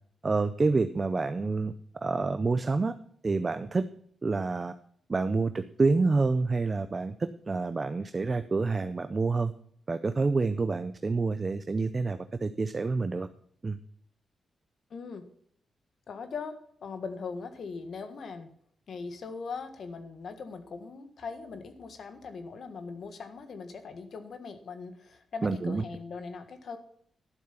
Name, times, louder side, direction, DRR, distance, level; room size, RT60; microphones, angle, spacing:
voice 1, 0.2-1.7 2.0-2.9 3.2-3.8 4.2-4.7 5.1-7.1 7.5-9.5 9.9-13.3 13.6-13.8 25.4-25.8, right 3 dB, 30° right, 10 dB, 0.6 m, -28 dB
voice 2, 14.9-15.2 16.1-16.5 16.8-18.5 18.9-26.8, left 4 dB, 60° left, 8 dB, 1.6 m, -40 dB
12.0 x 7.4 x 5.8 m, 0.63 s
wide cardioid pair, 135°, 0 cm